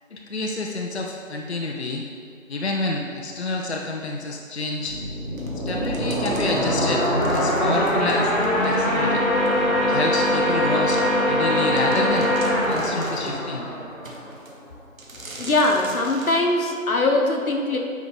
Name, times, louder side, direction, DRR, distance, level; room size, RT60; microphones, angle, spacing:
voice 1, 0.1-2.0 2.5-5.0 5.7-8.3 8.6-9.2 9.8-11.0 11.3-12.3 12.7-13.7, left 2 dB, 50° left, 1 dB, 0.6 m, -28 dB
sound 1, 4.9-14.4, equal, 30° left, 1.7 m, -22 dB
sound 2, 5.4-9.0 9.5-9.6 10.3-10.4 10.9-11.1 11.5-11.6 11.8-13.4 14.0-14.6 15.0-16.4, right 2 dB, 75° right, 1.3 m, -42 dB
voice 2, 15.4-17.8, left 2 dB, 90° left, 2 dB, 1.2 m, -21 dB
8.9 x 3.6 x 4.0 m, 2.2 s
figure-of-eight pair, 170°, 41 cm